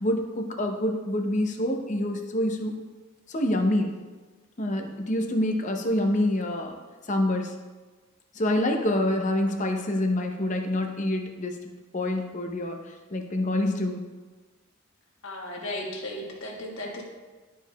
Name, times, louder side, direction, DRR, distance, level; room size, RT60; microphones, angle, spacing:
voice 1, 0.0-2.7 3.3-3.9 4.6-6.8 7.1-7.5 8.3-11.6 11.9-12.8 13.1-14.0, left 1 dB, 35° left, 3 dB, 0.6 m, -26 dB
voice 2, 15.2-17.0, left 1 dB, 60° left, -2 dB, 1.3 m, -35 dB
11.5 x 4.6 x 2.3 m, 1.3 s
head